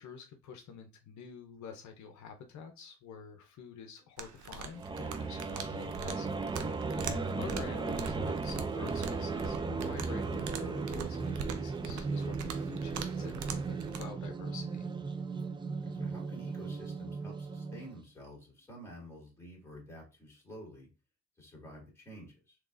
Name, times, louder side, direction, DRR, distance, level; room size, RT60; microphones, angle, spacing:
voice 1, 0.0-6.3 6.6-14.9, left 6 dB, 70° left, 5 dB, 0.6 m, -47 dB
sound 1, 4.2-14.0, right 6 dB, 75° right, 0.6 m, -44 dB
sound 2, 4.7-18.0, right 4 dB, 15° right, 0.3 m, -36 dB
voice 2, 15.8-20.9 21.4-22.6, equal, 10° left, -3 dB, 2.0 m, -50 dB
3.7 x 2.9 x 2.5 m, 0.30 s
cardioid pair, 90°, 30 cm